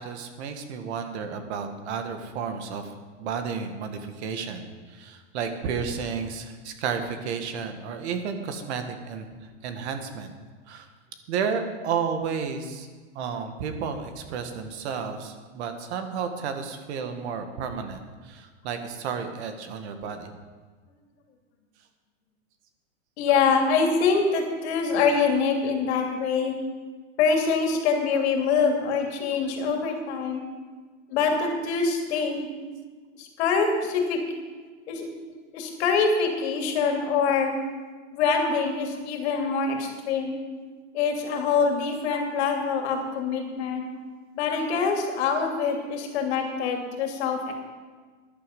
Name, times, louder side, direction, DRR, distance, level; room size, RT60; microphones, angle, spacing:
voice 1, 0.0-2.9 3.2-9.3 9.6-10.3 10.7-10.9 11.3-12.9 13.1-20.3, right 6 dB, 55° right, 7 dB, 1.8 m, -32 dB
voice 2, 23.2-26.5 27.2-30.4 31.1-32.5 33.2-34.2 34.9-35.1 35.5-37.5 38.1-40.4 40.9-43.9 44.3-47.5, left 5 dB, 55° left, 2 dB, 3.0 m, -24 dB
14.0 x 11.0 x 5.4 m, 1.4 s
hypercardioid pair, 140°, 38 cm